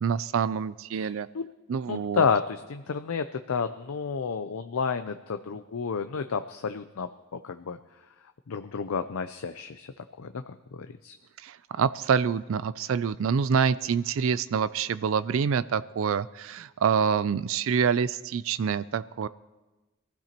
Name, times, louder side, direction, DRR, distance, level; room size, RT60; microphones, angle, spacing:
voice 1, 0.0-1.3 1.7-2.2 11.4-19.3, right 6 dB, 65° right, 15 dB, 0.4 m, -26 dB
voice 2, 1.0-1.6 1.9-7.8 8.5-11.1, left 5 dB, 80° left, 9 dB, 0.5 m, -31 dB
23.5 x 15.5 x 3.0 m, 1.1 s
head